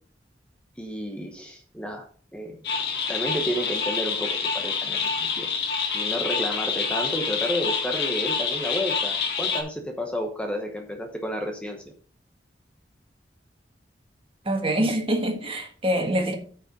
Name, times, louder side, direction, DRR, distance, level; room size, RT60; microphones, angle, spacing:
voice 1, 0.8-2.1 2.3-2.6 3.1-5.5 5.9-11.8, equal, 5° left, 1.0 m, -31 dB
sound 1, 2.6-9.6, left 5 dB, 65° left, 1.9 m, -27 dB
voice 2, 14.4-16.4, right 1 dB, 30° right, 1.6 m, -25 dB
8.5 x 5.2 x 5.2 m
head